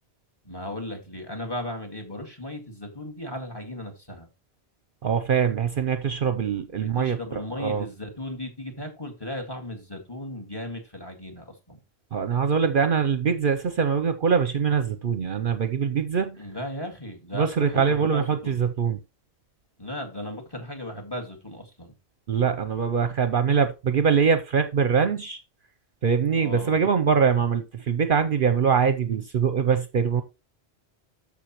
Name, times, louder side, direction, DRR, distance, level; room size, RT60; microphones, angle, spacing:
voice 1, 0.5-4.3 6.8-11.8 16.4-18.6 19.8-21.9 26.3-26.8, left 1 dB, 20° left, 2.0 m, -36 dB
voice 2, 5.0-7.2 7.6-7.9 12.1-16.4 17.3-19.0 22.3-25.4 26.0-30.2, right 6 dB, 55° right, 0.8 m, -23 dB
13.5 x 5.2 x 3.0 m
omnidirectional pair, 1.1 m